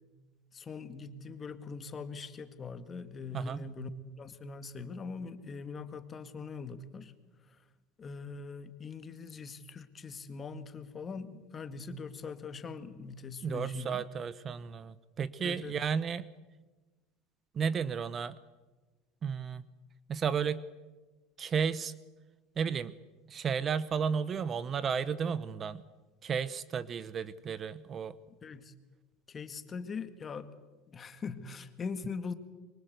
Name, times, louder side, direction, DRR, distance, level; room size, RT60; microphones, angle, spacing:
voice 1, 0.5-3.9 4.2-7.1 7.5-7.6 8.0-14.0 15.4-15.7 28.4-28.7 29.3-30.5 30.9-32.3, left 4 dB, 25° left, 11 dB, 1.9 m, -42 dB
voice 2, 3.3-3.6 13.4-16.3 17.5-18.3 19.2-19.6 20.1-20.6 21.4-21.9 22.6-23.0 23.3-25.8 26.2-28.2, right 6 dB, 30° right, 17 dB, 0.9 m, -33 dB
24.5 x 23.5 x 8.1 m, 1.2 s
supercardioid pair, 125°, 0 cm